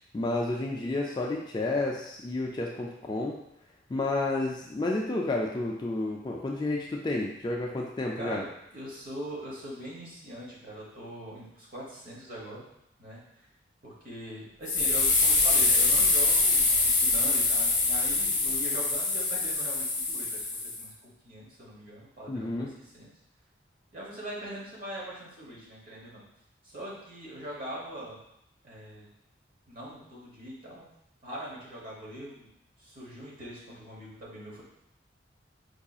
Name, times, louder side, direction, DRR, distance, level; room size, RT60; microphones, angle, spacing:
voice 1, 0.1-3.4 3.9-8.4 22.3-22.7, left 2 dB, 25° left, -1 dB, 0.3 m, -30 dB
voice 2, 8.2-12.6 13.0-13.2 13.8-20.9 21.2-23.1 23.9-26.2 26.6-28.2 28.6-29.1 29.7-30.9 31.2-32.5 32.8-34.6, equal, 50° right, -5 dB, 1.2 m, -42 dB
sound 1, 14.7-20.8, left 3 dB, 40° left, 1.0 m, -24 dB
4.6 x 2.7 x 2.4 m, 0.78 s
head